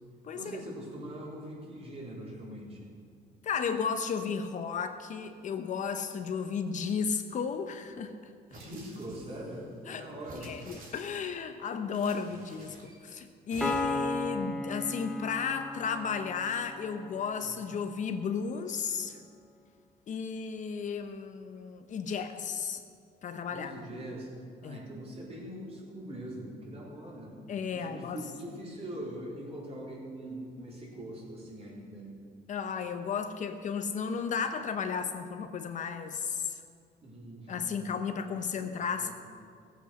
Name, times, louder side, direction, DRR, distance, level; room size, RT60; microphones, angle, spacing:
voice 1, 0.3-2.9 8.5-10.5 17.4-17.6 23.5-24.3 24.6-27.4 27.7-32.1 37.0-37.8 38.4-39.1, right 1 dB, 35° right, -3 dB, 3.9 m, -42 dB
voice 2, 3.4-8.2 9.9-10.1 10.4-19.2 20.1-22.8 23.2-23.7 24.6-24.8 27.5-28.2 32.5-36.6 37.5-39.1, left 6 dB, 45° left, 8 dB, 0.8 m, -34 dB
sound 1, 8.5-9.6 10.2-11.4 11.9-13.0 13.5-14.2, right 1 dB, 55° right, 3.2 m, -49 dB
Piano, 13.6-17.2, left 2 dB, ahead, 1.0 m, -35 dB
16.0 x 8.1 x 6.4 m, 2.2 s
cardioid pair, 110°, 17 cm